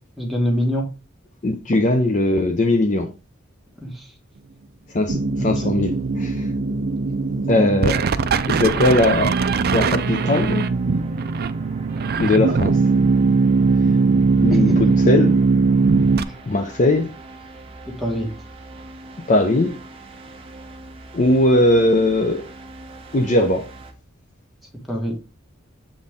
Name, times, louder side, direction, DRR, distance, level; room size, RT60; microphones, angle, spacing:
voice 1, 0.2-0.8 3.8-4.1 5.4-5.7 16.3-16.4 17.9-18.3 24.9-25.1, equal, ahead, 1.7 m, -25 dB
voice 2, 1.4-3.1 4.9-6.5 7.5-8.0 8.5-9.4 9.7-10.7 12.2-12.8 13.8-14.0 14.4-14.7 15.1-15.4 16.5-17.1 19.3-19.8 21.1-22.4 23.1-23.7, left 1 dB, 35° left, 0.6 m, -19 dB
sound 1, 5.1-16.2, right 4 dB, 50° right, 0.4 m, -20 dB
sound 2, 6.9-23.9, right 2 dB, 30° right, 1.0 m, -42 dB
7.5 x 4.2 x 3.6 m
head